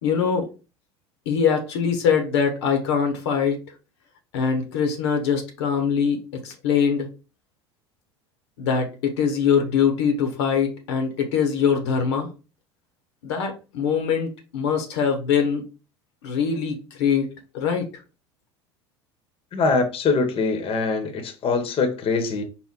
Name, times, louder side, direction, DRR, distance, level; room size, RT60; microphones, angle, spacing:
voice 1, 0.0-0.5 1.3-3.6 4.3-7.1 8.6-12.3 13.2-15.6 16.2-18.0, left 6 dB, 70° left, 0.9 m, -23 dB
voice 2, 19.5-22.4, left 4 dB, 40° left, 0.9 m, -23 dB
4.4 x 2.1 x 3.7 m
hypercardioid pair, 75°, 15 cm